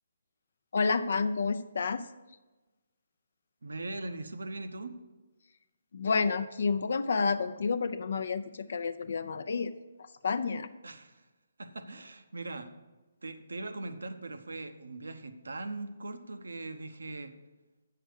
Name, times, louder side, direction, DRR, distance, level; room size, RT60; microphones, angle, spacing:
voice 1, 0.7-2.1 5.9-9.7 10.0-10.7, left 4 dB, 65° left, 9 dB, 0.5 m, -30 dB
voice 2, 3.6-5.0 10.8-11.2 11.6-12.7 13.2-17.3, right 2 dB, 90° right, 9 dB, 0.9 m, -40 dB
8.0 x 6.7 x 6.4 m, 1.2 s
hypercardioid pair, 155°, 0 cm